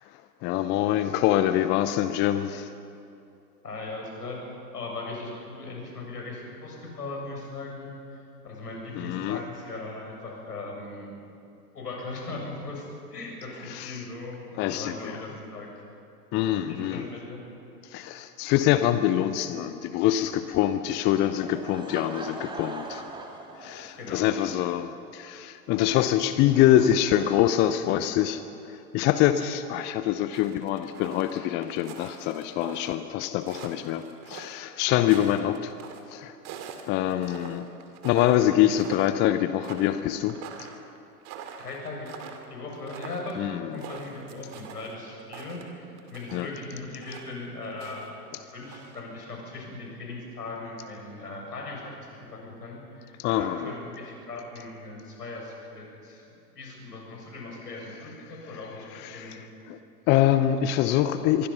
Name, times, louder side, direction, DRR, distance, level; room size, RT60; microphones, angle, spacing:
voice 1, 0.4-2.7 8.9-9.4 13.7-14.0 14.6-15.2 16.3-17.1 17.9-23.0 23.6-28.4 28.7-35.7 36.1-36.3 36.9-37.7 38.0-40.7 43.4-43.8 46.3-46.5 53.2-53.7 58.9-59.4 59.7-59.8 60.1-61.5, left 12 dB, 20° left, 11 dB, 0.7 m, -25 dB
voice 2, 3.6-4.4 4.7-11.1 11.7-15.8 16.7-17.4 24.0-24.3 35.1-35.3 41.6-42.1 42.5-48.1 48.4-59.4, left 2 dB, 75° left, -1 dB, 7.5 m, -39 dB
Laughter / Crowd, 21.4-24.3, right 2 dB, 10° right, 2.3 m, -40 dB
sound 1, 30.3-32.9 33.3-36.0 36.4-38.5 38.8-39.2 39.6-46.5 47.0-48.1 48.4-49.0, right 7 dB, 35° right, 2.4 m, -44 dB
25.5 x 23.0 x 5.7 m, 2.7 s
figure-of-eight pair, 100°, 48 cm